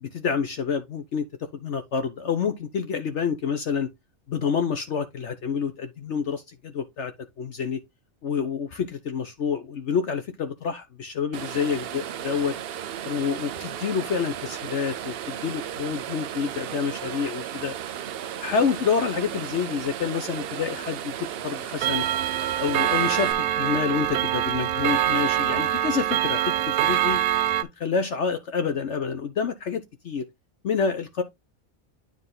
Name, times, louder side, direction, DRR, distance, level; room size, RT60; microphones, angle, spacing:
voice 1, 0.0-1.3 1.6-3.9 4.3-7.1 7.4-7.8 8.2-12.6 13.0-17.7 18.4-22.0 22.6-27.2 27.8-30.3 30.6-31.2, left 6 dB, 60° left, 1.1 m, -28 dB
sound 1, 11.3-23.3, right 10 dB, 60° right, 0.6 m, -35 dB
Clock, 21.8-27.6, right 12 dB, 80° right, 1.0 m, -24 dB
9.8 x 3.5 x 3.8 m
omnidirectional pair, 1.4 m